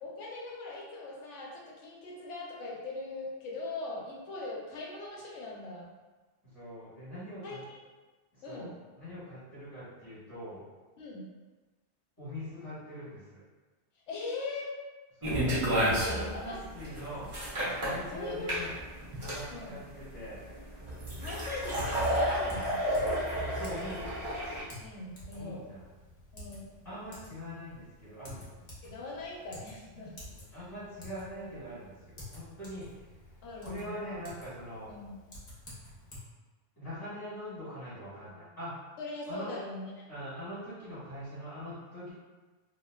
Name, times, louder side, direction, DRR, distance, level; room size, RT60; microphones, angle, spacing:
voice 1, 0.0-5.9 7.4-7.8 8.4-8.7 11.0-11.3 14.1-14.7 15.9-16.6 17.1-17.2 17.8-18.7 19.5-19.8 21.2-22.8 24.8-25.6 26.3-26.7 28.8-30.1 30.5-30.7 33.4-34.0 34.9-35.1 39.0-40.1, left 2 dB, 85° left, -3 dB, 0.9 m, -40 dB
voice 2, 6.4-7.6 8.3-8.7 9.0-10.6 12.2-13.4 15.2-17.3 17.8-18.7 19.2-20.5 23.4-24.4 25.3-25.8 26.8-28.5 30.2-33.1 33.6-34.9 36.8-38.7 39.3-39.5 40.1-42.1, equal, 15° left, -13 dB, 1.1 m, -43 dB
sound 1, 15.2-24.6, equal, 35° right, 0.5 m, -31 dB
Typing, 21.1-36.2, left 1 dB, 45° left, 0.8 m, -51 dB
2.6 x 2.1 x 2.2 m, 1.2 s
omnidirectional pair, 1.2 m